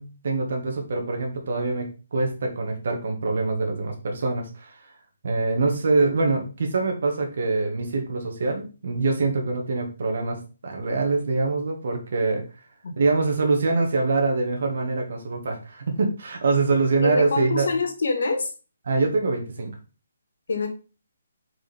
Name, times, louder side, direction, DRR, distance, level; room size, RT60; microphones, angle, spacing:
voice 1, 0.0-4.7 5.2-12.4 12.9-17.7 18.9-19.7, right 3 dB, 55° right, 2 dB, 1.7 m, -24 dB
voice 2, 17.0-18.5 20.5-20.7, left 3 dB, 70° left, 5 dB, 1.9 m, -25 dB
5.1 x 4.8 x 5.1 m, 0.33 s
hypercardioid pair, 175°, 0 cm